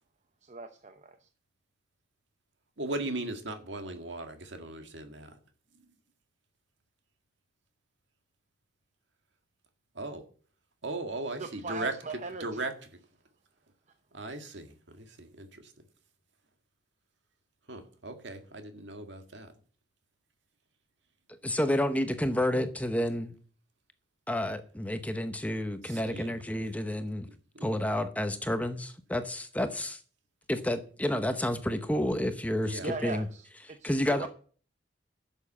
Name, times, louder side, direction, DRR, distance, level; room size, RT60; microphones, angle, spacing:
voice 1, 0.4-1.3 11.4-12.7 32.8-34.3, right 3 dB, 40° right, 0.8 m, -39 dB
voice 2, 2.8-5.4 10.0-10.2 10.8-12.7 14.1-15.7 17.7-19.5 22.3-22.4 25.8-26.4 27.0-27.1 27.5-27.6 32.6-33.0, right 2 dB, 65° right, 1.9 m, -38 dB
voice 3, 21.4-23.3 24.3-27.3 27.6-30.0 30.5-33.3 33.8-34.3, left 1 dB, 10° left, 0.8 m, -30 dB
11.0 x 7.3 x 7.4 m
head